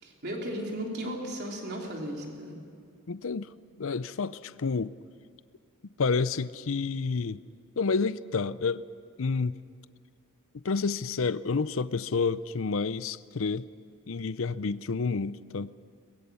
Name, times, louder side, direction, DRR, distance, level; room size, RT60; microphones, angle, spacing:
voice 1, 0.0-2.6, equal, 50° right, 3.6 m, -35 dB
voice 2, 3.1-3.5 3.8-4.9 6.0-7.4 7.8-8.8 9.2-9.5 10.6-13.6 14.1-15.7, left 4 dB, 65° left, 0.6 m, -29 dB
23.5 x 21.0 x 7.1 m
head